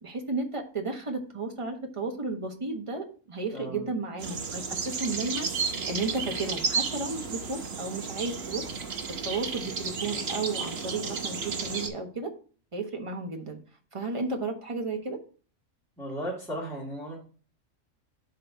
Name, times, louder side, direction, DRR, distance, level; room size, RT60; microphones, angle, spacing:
voice 1, 0.0-8.6 9.2-12.3 12.7-13.6 13.9-15.2, right 3 dB, 25° right, 3 dB, 1.2 m, -33 dB
voice 2, 3.5-3.8 16.0-17.2, equal, ahead, -6 dB, 2.3 m, -35 dB
sound 1, 4.2-11.9, right 5 dB, 55° right, 1.2 m, -33 dB
11.5 x 3.9 x 2.8 m, 0.39 s
omnidirectional pair, 1.4 m